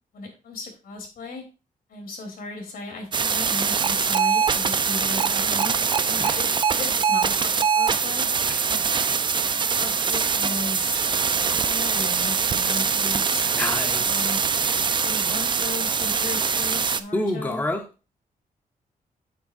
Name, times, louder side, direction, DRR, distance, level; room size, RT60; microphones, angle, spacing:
voice 1, 0.1-1.4 1.9-7.3 7.7-8.3 8.6-8.8 9.6-11.0 11.6-13.5 14.0-14.4 15.0-17.6, left 3 dB, 80° left, 3 dB, 3.3 m, -36 dB
sound 1, 3.1-17.0, right 6 dB, 35° right, 0.5 m, -23 dB
voice 2, 13.5-14.3 17.1-17.8, left 1 dB, 10° left, 5 dB, 0.9 m, -28 dB
9.2 x 8.4 x 2.6 m, 0.32 s
wide cardioid pair, 140°, 15 cm